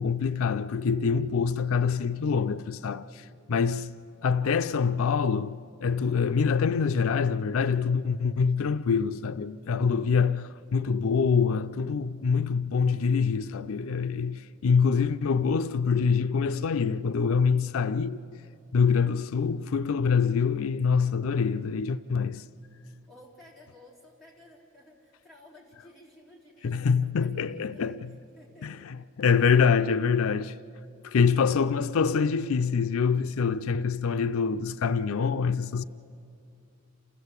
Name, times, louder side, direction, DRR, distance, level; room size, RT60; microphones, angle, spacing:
voice 1, 0.0-18.2 18.7-22.4 26.6-28.1 28.6-30.6 31.0-35.8, left 5 dB, 80° left, 0.4 m, -25 dB
voice 2, 23.1-28.0 28.4-29.1, left 1 dB, ahead, 3.7 m, -54 dB
28.5 x 15.0 x 8.1 m
head